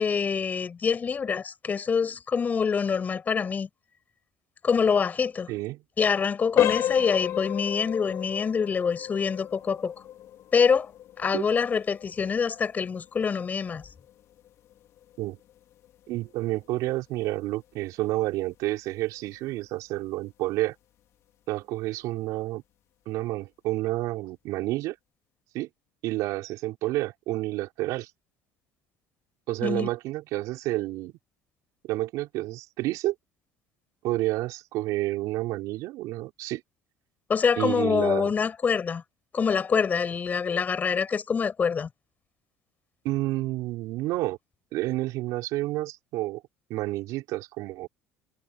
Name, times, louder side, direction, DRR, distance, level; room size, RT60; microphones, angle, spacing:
voice 1, 0.0-3.7 4.6-5.5 6.0-9.9 10.5-10.9 11.2-13.9 29.6-29.9 37.3-39.0 39.3-41.9, left 6 dB, 30° left, 6.3 m, -25 dB
voice 2, 5.5-5.8 11.3-11.5 15.2-15.4 16.1-20.7 21.5-22.6 23.1-25.0 25.5-25.7 26.0-28.1 29.5-31.1 31.8-33.1 34.0-36.6 37.6-38.3 43.0-44.4 44.7-46.4 46.7-47.9, right 17 dB, 70° right, 5.7 m, -30 dB
sound 1, 6.5-17.2 17.6-17.8 18.4-18.5 19.0-19.1, left 12 dB, 55° left, 4.2 m, -33 dB
cardioid pair, 120°, 6 cm